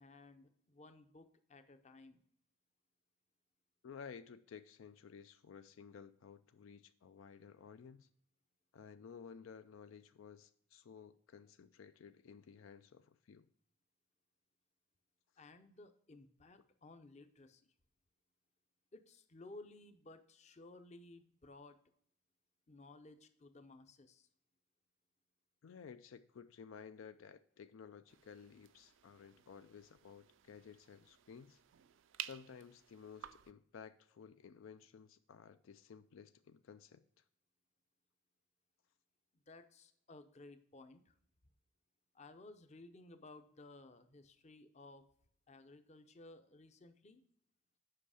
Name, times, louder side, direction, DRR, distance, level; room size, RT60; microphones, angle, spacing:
voice 1, 0.0-2.2 15.4-17.6 18.9-21.8 22.7-24.3 39.5-41.1 42.1-45.0 45.5-47.2, left 2 dB, 35° left, 9 dB, 0.6 m, -57 dB
voice 2, 3.8-8.1 8.7-13.5 25.6-31.6 32.2-37.2, left 6 dB, 75° left, 11 dB, 0.4 m, -55 dB
sound 1, 28.1-33.5, right 12 dB, 65° right, 0.4 m, -53 dB
7.7 x 5.6 x 4.8 m, 0.64 s
head